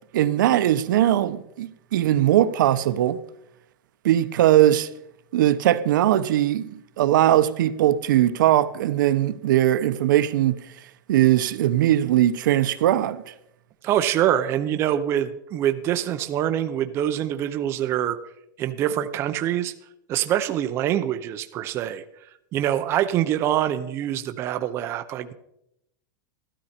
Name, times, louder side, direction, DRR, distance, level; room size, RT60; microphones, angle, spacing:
voice 1, 0.1-3.2 4.0-4.9 5.3-10.6 11.1-13.3, right 12 dB, 70° right, 0.7 m, -20 dB
voice 2, 13.8-18.2 18.6-19.7 20.1-22.0 22.5-25.3, right 11 dB, 25° right, 0.6 m, -25 dB
13.0 x 13.0 x 4.3 m
supercardioid pair, 170°, 11 cm